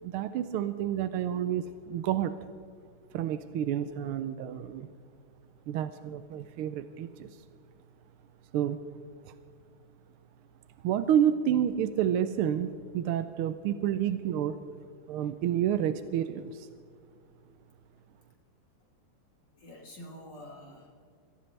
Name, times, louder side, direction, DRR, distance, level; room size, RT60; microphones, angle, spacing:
voice 1, 0.0-2.4 3.1-4.9 5.7-7.3 8.5-8.8 9.2-9.3 10.8-14.6 15.1-16.7, right 10 dB, 85° right, 11 dB, 1.5 m, -29 dB
voice 2, 19.5-21.2, left 1 dB, 55° left, 1 dB, 2.2 m, -48 dB
22.5 x 16.0 x 3.3 m, 2.3 s
omnidirectional pair, 2.4 m